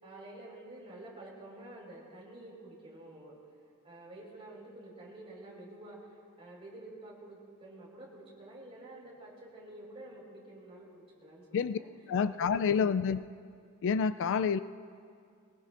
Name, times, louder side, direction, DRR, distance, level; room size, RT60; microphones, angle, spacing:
voice 1, 0.0-3.3 3.8-11.9 12.4-13.1 13.6-13.7, right 1 dB, 25° right, -4 dB, 4.5 m, -49 dB
voice 2, 12.1-13.2 13.8-14.6, left 6 dB, 60° left, 13 dB, 0.3 m, -28 dB
22.5 x 20.0 x 2.5 m, 2.3 s
head